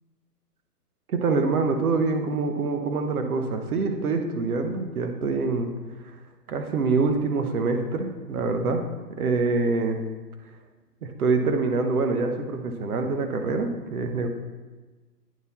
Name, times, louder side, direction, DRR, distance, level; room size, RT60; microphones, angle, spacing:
voice 1, 1.1-5.7 6.5-8.8 9.2-10.0 11.0-14.3, right 3 dB, 60° right, 6 dB, 1.0 m, -25 dB
9.5 x 3.9 x 4.1 m, 1.3 s
hypercardioid pair, 165°, 49 cm